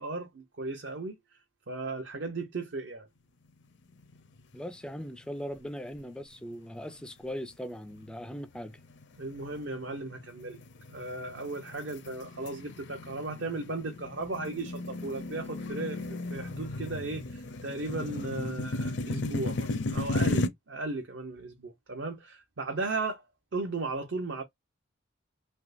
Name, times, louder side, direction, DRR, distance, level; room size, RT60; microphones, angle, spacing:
voice 1, 0.0-1.4 1.7-3.1 9.2-10.6 10.9-23.2 23.5-24.4, right 3 dB, 65° right, 0.7 m, -36 dB
sound 1, 4.0-4.6 4.9-5.0 5.7-6.2 6.8-7.0 7.6-20.5, left 2 dB, 60° left, 0.5 m, -35 dB
voice 2, 4.5-8.8, equal, 5° left, 0.3 m, -39 dB
3.5 x 2.7 x 2.5 m
head